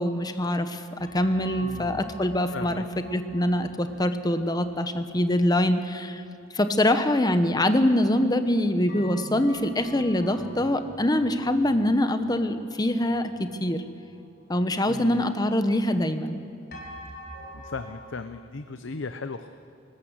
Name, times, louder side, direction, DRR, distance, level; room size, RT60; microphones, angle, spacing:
voice 1, 0.0-2.8 3.1-6.2 6.5-13.8 14.5-16.4, left 1 dB, 20° left, 9 dB, 0.9 m, -24 dB
sound 1, 1.0-7.8 8.1-8.2 8.9-14.9 15.3-15.4 16.7-17.9, equal, 50° left, 4.3 m, -46 dB
voice 2, 1.6-2.1 2.5-2.8 14.9-15.2 17.5-19.5, left 4 dB, 70° left, 9 dB, 0.7 m, -37 dB
20.0 x 19.5 x 8.1 m, 2.4 s
head